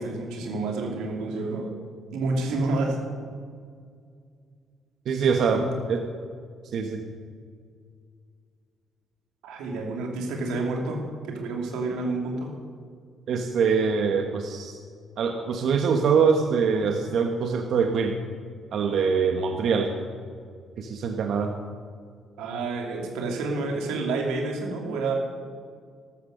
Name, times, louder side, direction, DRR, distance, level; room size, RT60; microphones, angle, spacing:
voice 1, 0.0-1.7 2.1-3.0 5.5-5.6 9.4-12.5 22.4-25.1, right 3 dB, 85° right, 1 dB, 2.8 m, -29 dB
voice 2, 5.1-5.6 5.9-6.0 6.7-7.0 13.3-14.8 15.2-18.1 18.7-19.9 20.8-21.5, right 5 dB, 65° right, 5 dB, 1.2 m, -24 dB
14.0 x 12.0 x 6.6 m, 2.1 s
supercardioid pair, 60°, 0 cm